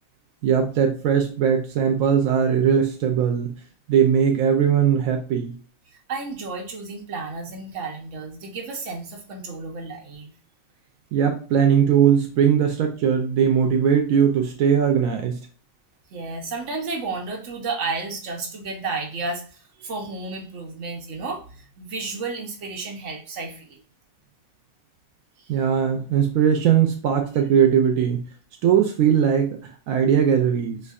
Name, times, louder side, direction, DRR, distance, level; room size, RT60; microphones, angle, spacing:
voice 1, 0.4-3.6 3.9-5.5 11.1-15.4 25.5-28.2 28.6-29.6 29.9-30.8, right 8 dB, 85° right, 3 dB, 1.0 m, -19 dB
voice 2, 6.1-10.3 16.1-23.8 25.4-25.5, right 3 dB, 65° right, 1 dB, 1.2 m, -32 dB
4.5 x 2.6 x 2.3 m, 0.39 s
omnidirectional pair, 1.4 m